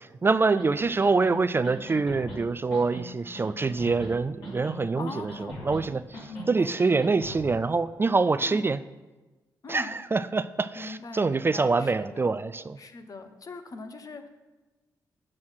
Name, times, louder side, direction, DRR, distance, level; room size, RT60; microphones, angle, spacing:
voice 1, 0.2-8.8 9.7-12.8, right 4 dB, 30° right, 14 dB, 0.3 m, -25 dB
sound 1, 0.6-0.7 1.0-1.3 1.6-2.4 2.7-3.0 3.3-4.1 4.4-4.8 5.1-5.8 6.1-6.5 6.8-7.4, right 1 dB, 75° left, 3.0 m, -40 dB
voice 2, 4.9-5.7 6.3-6.8 8.4-8.6 9.6-9.9 10.7-12.4 12.8-14.3, left 3 dB, 50° left, 8 dB, 0.9 m, -41 dB
7.7 x 6.1 x 5.7 m, 1.2 s
supercardioid pair, 55°, 8 cm